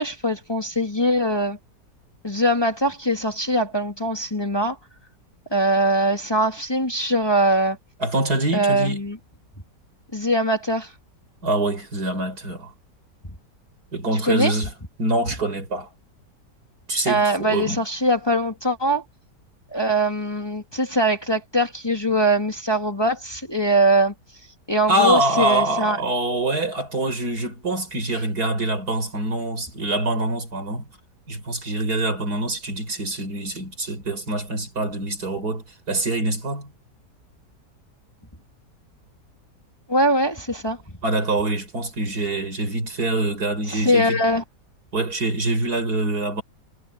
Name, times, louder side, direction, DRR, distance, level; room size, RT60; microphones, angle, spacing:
voice 1, 0.0-1.6 2.2-4.8 5.5-7.8 8.5-9.2 10.1-10.9 14.3-14.5 17.1-19.0 19.7-24.1 24.7-26.0 39.9-40.8 43.7-44.4, right 1 dB, 15° left, 2.8 m, -22 dB
voice 2, 8.0-9.1 11.4-12.7 13.9-14.7 15.0-15.9 16.9-17.8 24.9-30.9 31.3-36.7 41.0-44.2 44.9-46.4, right 2 dB, 60° right, 5.3 m, -25 dB
omnidirectional pair, 1.8 m